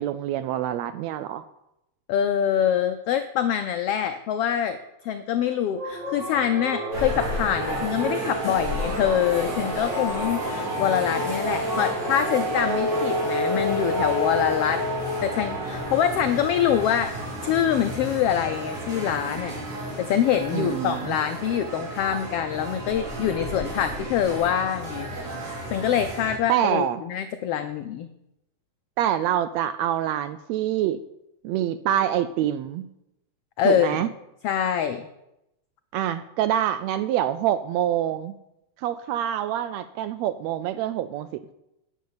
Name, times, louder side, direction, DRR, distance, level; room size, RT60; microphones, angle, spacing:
voice 1, 0.0-1.4 20.5-21.2 26.5-27.0 29.0-31.0 31.4-32.9 33.6-34.1 35.9-38.3 38.8-41.5, right 11 dB, 80° right, 13 dB, 1.6 m, -26 dB
voice 2, 2.1-4.8 5.0-14.8 15.2-17.1 17.4-19.5 20.0-25.1 25.7-28.1 33.6-34.1 34.4-35.1, left 9 dB, 85° left, 9 dB, 1.3 m, -25 dB
sound 1, 5.8-17.6, equal, 35° right, 4.5 m, -29 dB
sound 2, 6.9-26.4, right 1 dB, 65° right, 4.2 m, -34 dB
10.5 x 6.5 x 8.6 m, 0.87 s
omnidirectional pair, 3.4 m